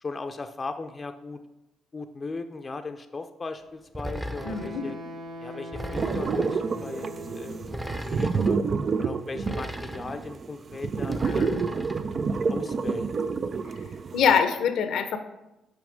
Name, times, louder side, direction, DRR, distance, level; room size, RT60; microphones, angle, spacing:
voice 1, 0.0-1.4 1.9-5.0 5.4-7.1 7.3-8.6 9.0-11.6 12.5-13.1, left 3 dB, 30° left, 7 dB, 0.5 m, -37 dB
sound 1, 3.9-4.8 5.7-6.6 7.6-8.5 9.4-10.3 11.1-12.0, equal, 10° right, 0.7 m, -37 dB
Wind instrument woodwind instrument, 4.3-7.8, left 1 dB, 65° right, 1.7 m, -41 dB
voice 2, 4.4-4.9 11.2-11.6 14.1-15.2, left 7 dB, 75° left, 8 dB, 0.7 m, -24 dB
sound 2, 6.0-14.4, right 5 dB, 45° right, 0.3 m, -29 dB
6.2 x 5.2 x 5.1 m, 0.97 s
cardioid pair, 80°, 0 cm